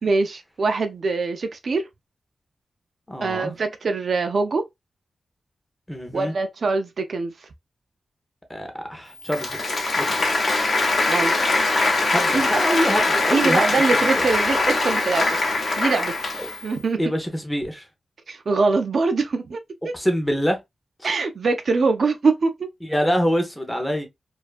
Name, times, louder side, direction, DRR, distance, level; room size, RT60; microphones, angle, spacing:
voice 1, 0.0-1.9 3.2-4.6 6.1-7.3 11.0-11.3 12.3-12.5 13.3-16.3 16.6-17.0 18.3-19.6 19.8-19.9 21.0-22.7, right 4 dB, 50° right, 0.3 m, -23 dB
voice 2, 3.1-3.5 5.9-6.3 8.5-9.6 9.9-10.2 12.1-13.6 14.0-14.2 16.4-16.5 17.0-17.8 19.9-20.6 22.9-24.1, equal, 5° left, 0.6 m, -25 dB
Applause, 9.2-16.7, left 3 dB, 45° left, 0.7 m, -22 dB
2.5 x 2.3 x 2.3 m
wide cardioid pair, 175°, 0 cm